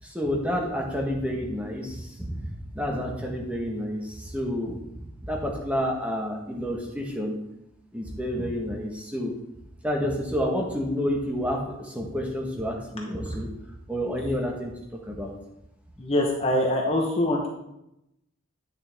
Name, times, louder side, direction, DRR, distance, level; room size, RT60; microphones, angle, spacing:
voice 1, 0.0-2.5 2.7-4.8 5.2-7.4 7.9-9.3 9.8-13.5 13.9-14.7 15.1-15.3, equal, 5° right, -1 dB, 1.3 m, -29 dB
voice 2, 16.0-17.5, left 1 dB, 25° left, 0 dB, 1.0 m, -24 dB
9.5 x 6.8 x 3.5 m, 0.86 s
head